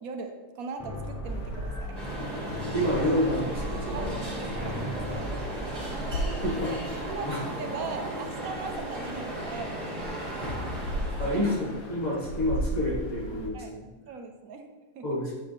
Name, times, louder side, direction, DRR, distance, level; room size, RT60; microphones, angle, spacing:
voice 1, 0.0-2.0 3.9-5.7 6.7-6.8 7.1-7.3 7.6-9.8 13.5-13.7 14.1-14.7 14.9-15.2, right 5 dB, 75° right, 5 dB, 1.2 m, -39 dB
sound 1, 0.8-6.0, equal, 10° left, 1.1 m, -38 dB
sound 2, 1.2-13.5, equal, 90° left, 1.5 m, -37 dB
sound 3, 2.0-12.0, right 1 dB, 25° right, 1.7 m, -36 dB
voice 2, 2.7-4.2 6.4-7.0 7.2-7.5 11.2-13.9 15.0-15.3, left 1 dB, 30° left, -5 dB, 1.7 m, -29 dB
8.4 x 6.3 x 3.3 m, 1.3 s
omnidirectional pair, 1.5 m